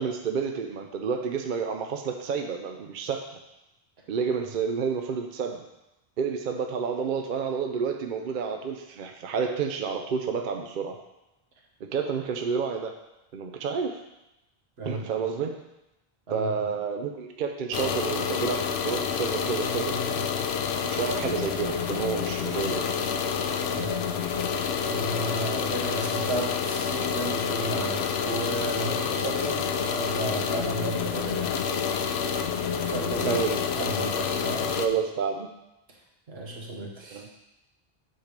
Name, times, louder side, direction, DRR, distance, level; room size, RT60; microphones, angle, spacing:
voice 1, 0.0-3.2 4.1-5.6 6.2-11.0 11.8-12.9 13.3-14.0 14.8-15.6 16.3-20.2 20.8-22.9 33.2-33.9 34.7-35.5 37.1-37.3, right 6 dB, 60° right, 4 dB, 0.7 m, -30 dB
sound 1, 17.7-34.9, left 6 dB, 90° left, 0.8 m, -28 dB
voice 2, 23.7-24.1 24.8-31.5 32.8-33.4 33.7-34.7 36.3-37.2, right 1 dB, 80° right, -1 dB, 1.5 m, -33 dB
7.9 x 3.2 x 5.1 m, 0.92 s
omnidirectional pair, 1.0 m